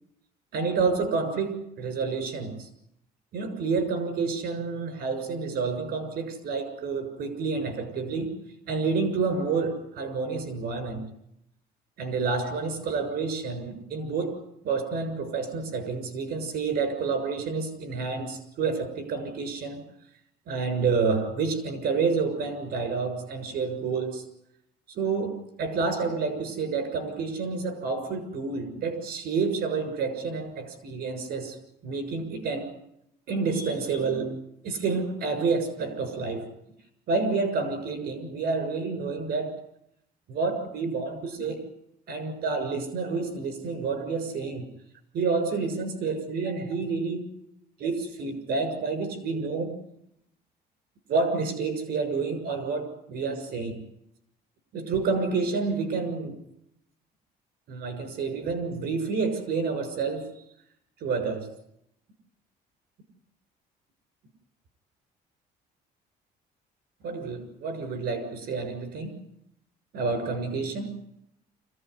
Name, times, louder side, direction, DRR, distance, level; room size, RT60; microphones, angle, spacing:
voice 1, 0.5-2.7 3.3-8.3 8.7-11.1 12.0-14.4 14.6-19.8 20.5-24.2 24.9-31.6 31.8-32.7 33.3-34.3 34.6-36.4 37.1-39.6 40.3-41.6 42.1-44.7 45.1-47.3 47.8-49.7 51.1-53.8 54.7-56.4 57.7-60.3 61.0-61.5 67.0-69.1 69.9-70.9, right 4 dB, 70° right, 9 dB, 6.9 m, -29 dB
26.0 x 16.0 x 9.8 m, 0.78 s
cardioid pair, 110°, 17 cm